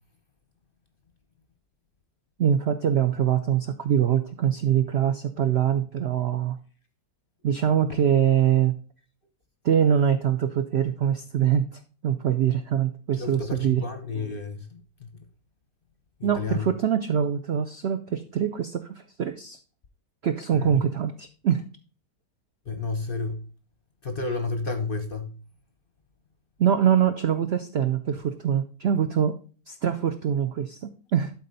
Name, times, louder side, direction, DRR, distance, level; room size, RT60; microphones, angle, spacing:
voice 1, 2.4-6.6 7.4-8.7 9.6-11.6 12.0-13.8 16.2-19.6 20.2-21.6 26.6-29.3 29.7-30.8 31.1-31.3, right 9 dB, 70° right, 0.6 m, -23 dB
voice 2, 13.2-14.8 16.2-16.7 20.5-20.8 22.7-23.4 24.0-25.3, left 4 dB, 45° left, 0.7 m, -31 dB
12.0 x 4.1 x 4.0 m
omnidirectional pair, 1.8 m